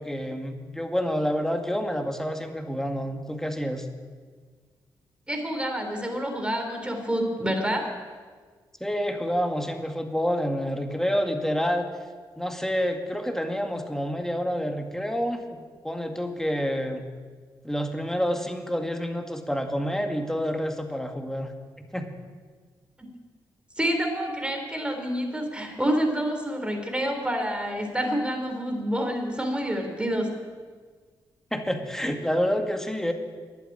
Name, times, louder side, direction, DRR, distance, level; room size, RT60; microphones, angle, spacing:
voice 1, 0.0-3.9 8.8-11.9 12.4-17.0 17.6-21.5 21.8-22.0 31.5-33.1, equal, 5° left, 5 dB, 2.1 m, -28 dB
voice 2, 5.3-7.8 23.8-30.3, equal, 10° right, 3 dB, 3.9 m, -28 dB
11.5 x 8.3 x 9.9 m, 1.6 s
supercardioid pair, 45°, 9 cm